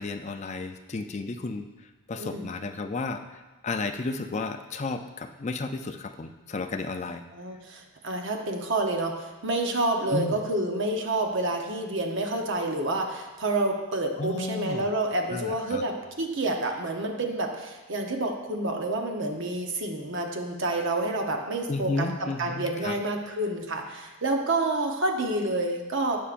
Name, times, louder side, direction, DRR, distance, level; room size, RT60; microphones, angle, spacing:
voice 1, 0.0-7.2 10.1-10.4 14.2-14.9 15.3-15.8 21.7-23.0, left 3 dB, 30° left, 7 dB, 0.4 m, -33 dB
voice 2, 2.2-2.5 7.3-26.2, right 2 dB, 55° right, 3 dB, 0.9 m, -28 dB
16.5 x 5.6 x 2.5 m, 1.2 s
head